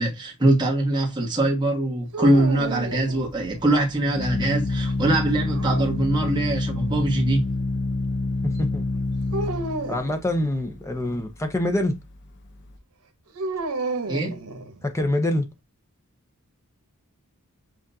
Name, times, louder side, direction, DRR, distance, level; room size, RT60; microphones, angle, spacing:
voice 1, 0.0-7.5 14.1-14.4, right 1 dB, 20° right, 1.3 m, -22 dB
sound 1, 2.1-3.7 5.3-6.5 9.3-10.1 13.3-15.0, right 2 dB, 90° right, 0.9 m, -32 dB
Organ, 2.3-12.8, left 2 dB, 55° left, 0.7 m, -28 dB
voice 2, 9.9-11.9 14.8-15.5, left 1 dB, 15° left, 0.6 m, -25 dB
7.4 x 2.5 x 2.7 m
head